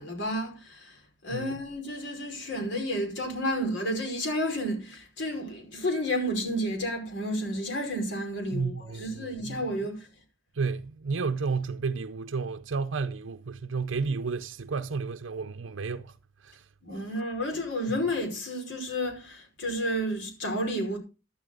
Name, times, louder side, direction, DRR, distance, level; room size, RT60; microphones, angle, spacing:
voice 1, 0.0-10.1 16.8-21.0, equal, 70° left, 5.0 m, -31 dB
voice 2, 8.5-9.6 10.6-16.1 16.4-16.6 17.0-17.1, right 4 dB, 90° right, 0.6 m, -32 dB
12.5 x 12.0 x 3.9 m
head